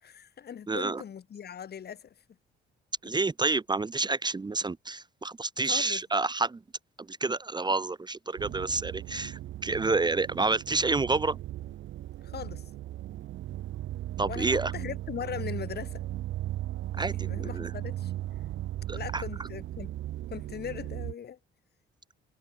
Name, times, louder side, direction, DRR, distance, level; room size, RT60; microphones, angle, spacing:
voice 1, 0.0-2.2 5.6-6.0 12.2-12.7 14.3-16.0 17.0-18.1 18.9-19.9 20.3-21.4, left 8 dB, 55° left, 3.6 m, -39 dB
voice 2, 0.7-1.0 3.0-6.6 7.0-11.4 14.2-14.7 17.0-17.7 18.9-19.2, right 3 dB, 20° right, 1.0 m, -29 dB
sound 1, 8.4-21.1, right 14 dB, 75° right, 0.8 m, -37 dB
cardioid pair, 90°, 20 cm